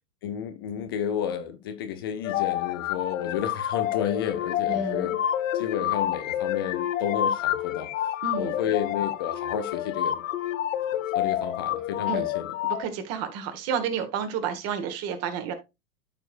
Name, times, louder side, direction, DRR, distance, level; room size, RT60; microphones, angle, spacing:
voice 1, 0.2-5.1 5.5-7.9 8.4-10.2 11.1-12.5, left 9 dB, 20° left, 0.3 m, -31 dB
sound 1, 2.2-12.8, left 11 dB, 55° left, 0.9 m, -28 dB
voice 2, 4.7-5.1 8.2-8.5 12.1-12.3 12.6-15.5, right 7 dB, 30° right, 1.6 m, -30 dB
13.0 x 4.5 x 2.5 m
figure-of-eight pair, 100°, 47 cm